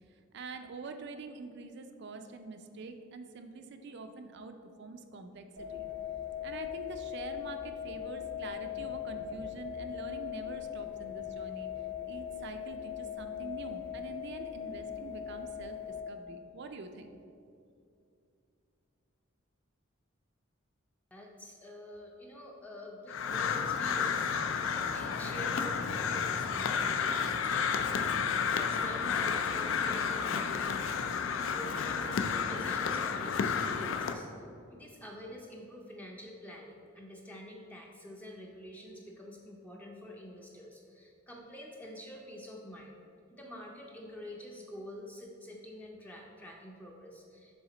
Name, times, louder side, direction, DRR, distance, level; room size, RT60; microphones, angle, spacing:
voice 1, 0.3-5.4 5.7-5.9 6.4-11.7 12.1-17.2, right 3 dB, 55° right, 7 dB, 0.4 m, -45 dB
sound 1, 5.6-16.0, left 10 dB, 85° right, 0.8 m, -40 dB
voice 2, 21.1-34.3 34.7-43.0 43.3-47.5, equal, 10° left, -1 dB, 0.5 m, -47 dB
Crow, 23.1-34.1, left 6 dB, 65° left, 0.4 m, -31 dB
7.1 x 3.5 x 3.9 m, 2.5 s
head